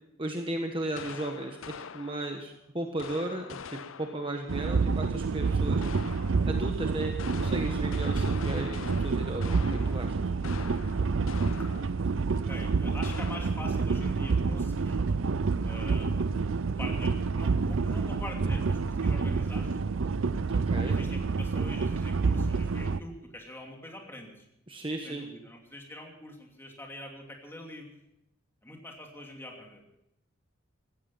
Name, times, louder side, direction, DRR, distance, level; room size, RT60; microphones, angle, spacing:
voice 1, 0.2-5.8 6.5-7.1 7.4-10.2 18.5-18.7 20.7-21.0 24.7-25.2, right 1 dB, 25° right, 3 dB, 1.2 m, -35 dB
sound 1, 1.0-2.5 3.0-4.4 5.8-6.6 7.0-12.1 12.4-12.5 13.0-13.9, left 7 dB, 75° left, 0.6 m, -44 dB
sound 2, 4.5-23.0, right 4 dB, 70° right, 0.5 m, -28 dB
voice 2, 12.5-15.0 15.6-16.5 16.8-19.8 20.5-24.4 25.0-27.9 28.6-29.8, left 1 dB, 10° left, 1 dB, 2.8 m, -44 dB
16.0 x 15.0 x 5.8 m, 0.84 s
head